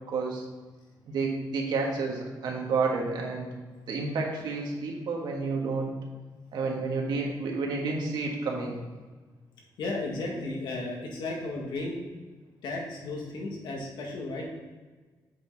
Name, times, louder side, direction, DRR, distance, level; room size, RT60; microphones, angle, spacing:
voice 1, 0.1-0.4 1.1-3.5 3.8-5.9 6.5-8.8, right 4 dB, 70° right, 0 dB, 1.6 m, -30 dB
voice 2, 9.8-12.0 12.6-14.4, left 2 dB, 75° left, -1 dB, 1.9 m, -34 dB
7.8 x 5.5 x 4.0 m, 1.3 s
wide cardioid pair, 160°, 8 cm